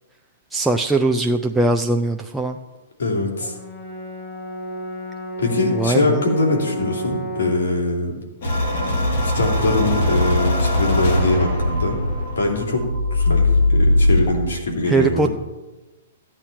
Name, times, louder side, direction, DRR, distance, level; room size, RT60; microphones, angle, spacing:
voice 1, 0.5-2.6 5.7-6.2 14.9-15.3, right 2 dB, 5° right, 2 dB, 0.5 m, -20 dB
voice 2, 3.0-3.5 5.4-8.1 9.2-12.0 12.3-12.8 13.1-15.3, left 2 dB, 80° left, 0 dB, 3.4 m, -22 dB
Brass instrument, 3.4-7.7, right 1 dB, 25° left, 2.4 m, -32 dB
sound 1, 8.4-14.3, left 1 dB, 65° left, 4.1 m, -20 dB
15.0 x 8.9 x 4.4 m, 1.1 s
hypercardioid pair, 140°, 0 cm